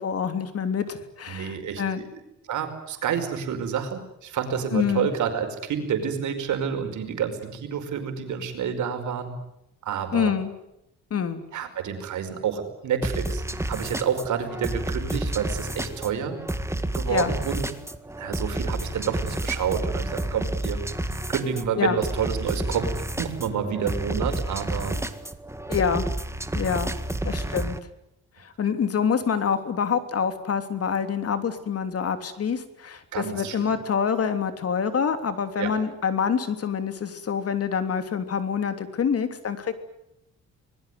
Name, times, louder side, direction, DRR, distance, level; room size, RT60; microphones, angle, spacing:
voice 1, 0.0-2.0 4.7-5.1 10.1-10.5 11.1-11.4 17.1-17.3 21.8-22.0 25.7-26.1 26.5-26.9 27.2-27.8 28.4-39.7, left 7 dB, 50° left, 9 dB, 3.2 m, -26 dB
voice 2, 1.3-2.2 2.5-9.3 9.8-10.4 11.5-16.4 16.9-17.7 18.2-20.8 21.3-25.0 33.1-33.7 35.6-35.7, right 7 dB, 75° right, 6 dB, 5.3 m, -29 dB
sound 1, 13.0-27.8, right 1 dB, 10° right, 1.9 m, -30 dB
25.5 x 21.0 x 9.5 m, 0.85 s
cardioid pair, 90°, 30 cm